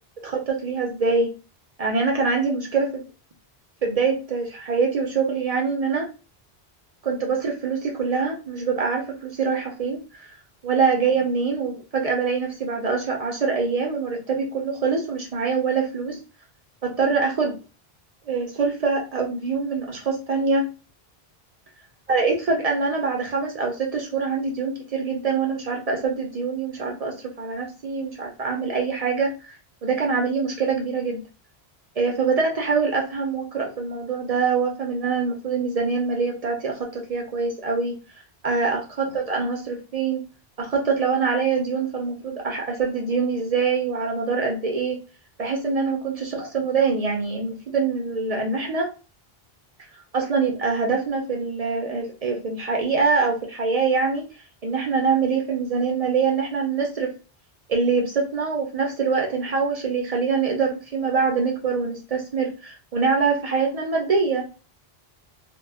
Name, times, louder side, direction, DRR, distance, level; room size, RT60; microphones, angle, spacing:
voice 1, 0.2-1.3 1.8-3.0 3.8-6.1 7.0-10.3 10.6-16.2 16.8-17.6 18.3-20.7 22.1-29.5 29.8-31.2 32.0-38.0 38.4-40.2 40.6-45.0 45.4-48.9 50.1-54.3 54.6-57.1 57.7-64.4, right 4 dB, 55° right, 2 dB, 0.4 m, -24 dB
2.2 x 2.0 x 3.3 m, 0.33 s
omnidirectional pair, 1.0 m